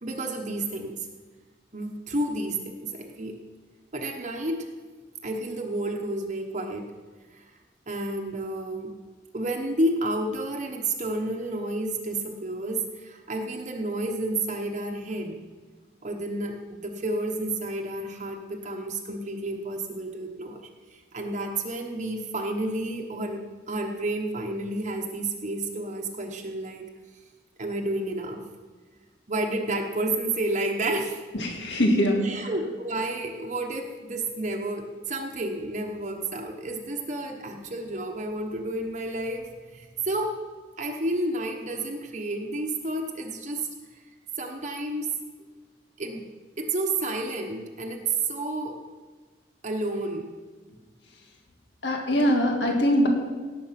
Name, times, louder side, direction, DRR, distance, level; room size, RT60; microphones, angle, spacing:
voice 1, 0.0-1.1 1.7-3.3 3.9-4.7 5.2-6.9 7.3-7.5 7.9-8.9 9.3-15.4 16.0-26.9 27.6-28.4 29.3-31.2 32.2-40.4 40.8-43.7 44.4-45.1 46.0-46.2 46.6-48.8 49.6-50.3, right 2 dB, 40° right, 1 dB, 1.1 m, -30 dB
voice 2, 31.3-32.3 51.8-53.1, equal, 70° left, 2 dB, 1.8 m, -22 dB
17.5 x 6.9 x 5.9 m, 1.4 s
head